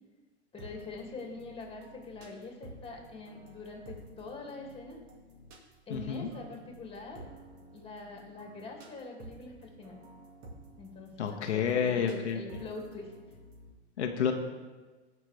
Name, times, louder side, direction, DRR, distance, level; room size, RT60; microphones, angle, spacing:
voice 1, 0.5-5.0 5.9-7.3 7.7-10.0 10.8-13.1, left 3 dB, 15° left, 0 dB, 2.4 m, -44 dB
sound 1, 0.6-13.7, right 1 dB, 50° right, 2.2 m, -52 dB
voice 2, 5.9-6.3 11.2-12.4 14.0-14.3, left 7 dB, 85° left, 3 dB, 1.2 m, -29 dB
16.0 x 5.9 x 3.4 m, 1.3 s
hypercardioid pair, 110°, 34 cm